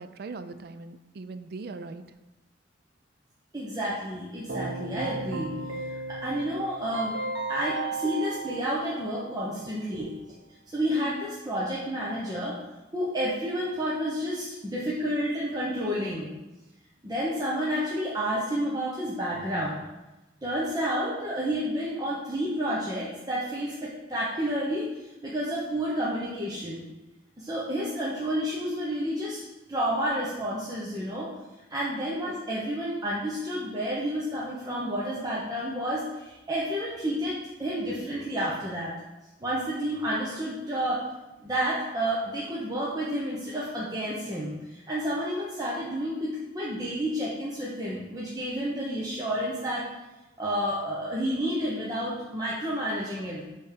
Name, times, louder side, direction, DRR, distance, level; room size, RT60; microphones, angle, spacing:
voice 1, 0.0-2.0 9.9-10.1 32.0-32.1, right 3 dB, 55° right, 10 dB, 0.4 m, -40 dB
voice 2, 3.5-5.5 5.9-7.2 7.5-10.1 10.7-12.5 12.9-16.3 17.0-19.8 20.4-26.8 27.4-29.4 29.7-31.3 31.7-38.9 39.4-41.0 41.4-49.9 50.4-53.4, equal, 20° right, -6 dB, 0.8 m, -30 dB
Keyboard (musical), 4.5-9.5, right 3 dB, 75° right, 1.1 m, -35 dB
6.8 x 3.4 x 5.0 m, 1.1 s
head